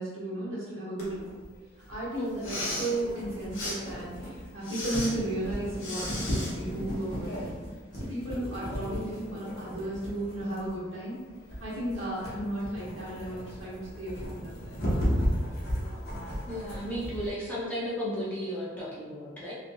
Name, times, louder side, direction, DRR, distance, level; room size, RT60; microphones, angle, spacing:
voice 1, 0.0-1.3 1.9-7.5 7.9-11.2 11.6-15.4 15.7-15.8, right 1 dB, 85° right, -8 dB, 1.3 m, -35 dB
sound 1, 1.0-17.3, equal, 55° left, 0.9 m, -35 dB
Respiratory sounds, 2.3-2.9 3.5-3.8 4.6-5.1 5.8-6.5, left 1 dB, 85° left, 1.0 m, -35 dB
voice 2, 16.5-19.5, equal, 10° left, -9 dB, 0.7 m, -34 dB
3.1 x 2.7 x 2.6 m, 1.5 s
head